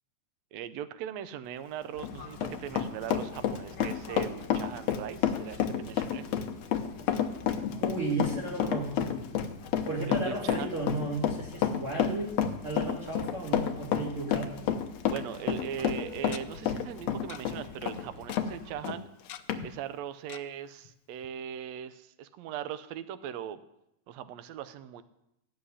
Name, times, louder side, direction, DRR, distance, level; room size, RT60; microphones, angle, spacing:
voice 1, 0.5-6.2 10.1-10.7 15.1-19.1 19.6-23.6 24.1-25.0, right 9 dB, 75° right, 12 dB, 1.7 m, -39 dB
Run, 1.8-18.5 18.8-19.0 19.5-19.6, left 9 dB, 70° left, 1.9 m, -30 dB
Fixed-wing aircraft airplane, 1.9-18.8, left 3 dB, 45° left, 2.1 m, -49 dB
voice 2, 7.8-9.2 9.9-12.3 12.6-14.5, right 2 dB, 45° right, -6 dB, 3.4 m, -34 dB
Tick-tock, 15.4-15.5 16.3-16.4 17.3-17.4 17.7-17.8 18.0-18.4 19.3-19.7 20.3-20.4 20.8-20.9 21.2-21.3, left 12 dB, 90° left, 1.3 m, -44 dB
15.5 x 6.5 x 9.8 m, 0.83 s
omnidirectional pair, 3.6 m